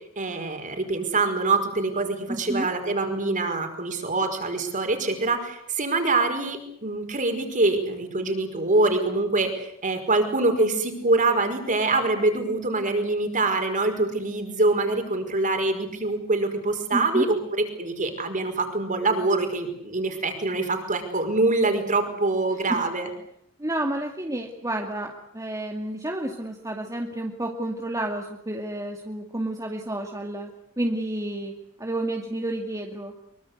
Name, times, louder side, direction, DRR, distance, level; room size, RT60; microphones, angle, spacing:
voice 1, 0.2-17.4 17.8-23.1, right 2 dB, 40° right, 6 dB, 5.3 m, -24 dB
voice 2, 2.3-2.7 16.9-17.3 22.7-22.8 23.6-30.5 30.8-33.1, right 1 dB, 15° right, 2 dB, 2.3 m, -30 dB
24.5 x 24.0 x 8.2 m, 0.72 s
head